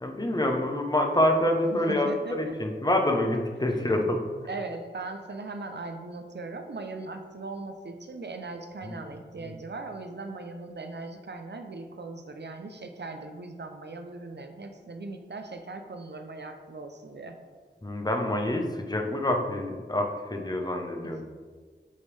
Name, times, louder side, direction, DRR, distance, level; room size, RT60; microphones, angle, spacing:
voice 1, 0.0-4.2 8.8-8.9 9.4-9.5 17.8-21.2, left 1 dB, 20° left, 3 dB, 0.8 m, -27 dB
voice 2, 1.7-2.6 3.7-4.1 4.4-17.4 21.0-21.2, right 3 dB, 60° right, 5 dB, 0.7 m, -39 dB
9.3 x 3.6 x 3.3 m, 1.5 s
wide cardioid pair, 60°, 20 cm